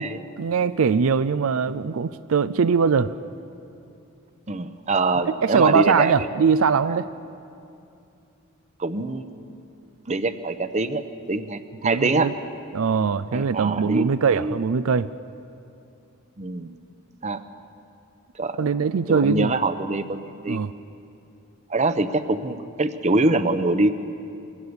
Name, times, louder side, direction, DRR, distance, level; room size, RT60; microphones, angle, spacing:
voice 1, 0.4-3.1 5.3-7.1 11.8-12.3 12.7-15.1 18.6-19.5 20.5-20.7, right 5 dB, 75° right, 13 dB, 0.5 m, -21 dB
voice 2, 4.5-6.1 6.9-7.0 8.8-9.3 10.1-11.0 11.3-12.3 13.3-14.6 16.4-16.8 17.2-17.4 18.3-18.6 19.1-20.6 21.7-23.9, right 2 dB, 30° right, 10 dB, 0.8 m, -24 dB
23.5 x 16.5 x 8.0 m, 2.6 s
head